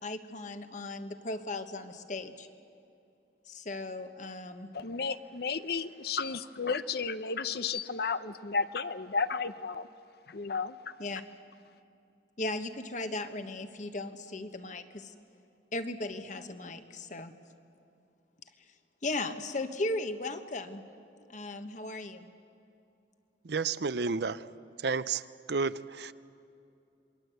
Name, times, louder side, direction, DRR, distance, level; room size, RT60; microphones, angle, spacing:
voice 1, 0.0-2.5 3.5-4.7 11.0-11.2 12.4-15.1 15.7-17.3 19.0-20.8 21.3-22.3, left 2 dB, 45° left, 8 dB, 1.3 m, -37 dB
voice 2, 4.7-9.9 10.3-10.9, left 5 dB, 60° left, 13 dB, 0.7 m, -33 dB
voice 3, 23.4-24.5 24.8-26.1, right 4 dB, 65° right, 15 dB, 0.6 m, -31 dB
27.5 x 22.0 x 8.0 m, 2.7 s
head